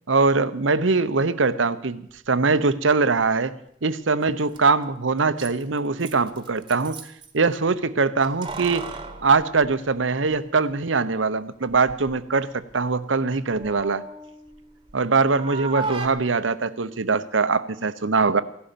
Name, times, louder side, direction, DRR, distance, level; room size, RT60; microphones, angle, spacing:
voice 1, 0.1-3.5 3.8-7.0 7.3-8.9 9.2-14.0 14.9-18.4, right 4 dB, 80° right, 14 dB, 0.8 m, -22 dB
Keys jangling, 4.2-4.3 4.5-4.6 5.2-7.3 8.2-10.4 10.7-10.8 11.7-12.2 12.6-15.0 15.3-16.1, right 3 dB, 25° right, 1.3 m, -36 dB
16.5 x 11.5 x 6.9 m, 0.71 s
head